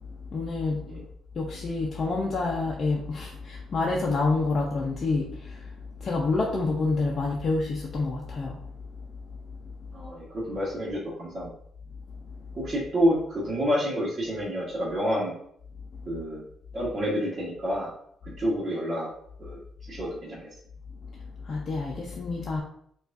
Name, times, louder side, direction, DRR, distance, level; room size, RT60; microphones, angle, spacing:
voice 1, 0.1-0.9 1.3-9.0 12.3-12.4 21.1-22.6, left 3 dB, 45° left, -2 dB, 0.5 m, -28 dB
voice 2, 9.9-11.5 12.5-15.3 16.0-16.4 16.7-17.9 18.4-19.1 19.4-19.6 19.9-20.5, equal, 40° right, -8 dB, 1.2 m, -28 dB
4.6 x 2.4 x 2.5 m, 0.67 s
cardioid pair, 90°, 0 cm